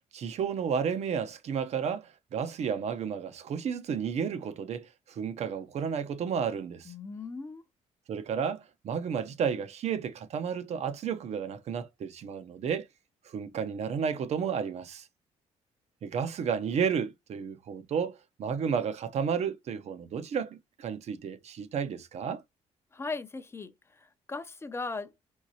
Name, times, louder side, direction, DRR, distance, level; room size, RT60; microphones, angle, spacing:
voice 1, 0.1-6.9 8.1-12.9 13.3-15.1 16.0-22.4, right 7 dB, 60° right, 0.9 m, -32 dB
voice 2, 6.9-7.6 22.9-25.1, left 3 dB, 20° left, 0.6 m, -38 dB
4.7 x 3.8 x 2.8 m
cardioid pair, 130°, 13 cm